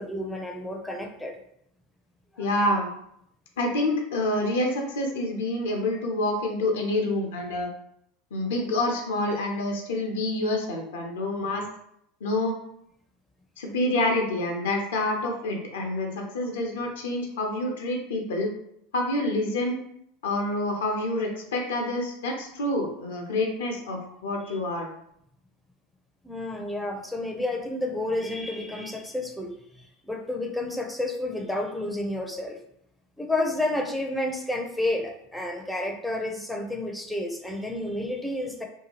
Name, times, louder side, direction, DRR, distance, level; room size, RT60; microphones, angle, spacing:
voice 1, 0.0-1.4 2.3-2.5 26.2-32.6 33.2-38.6, left 1 dB, ahead, 2 dB, 0.5 m, -30 dB
voice 2, 2.4-2.9 3.6-7.7 8.3-11.6 12.2-12.6 13.6-18.5 18.9-19.8 20.2-24.9, left 1 dB, 85° left, 1 dB, 0.6 m, -27 dB
2.7 x 2.3 x 2.9 m, 0.73 s
hypercardioid pair, 95°, 0 cm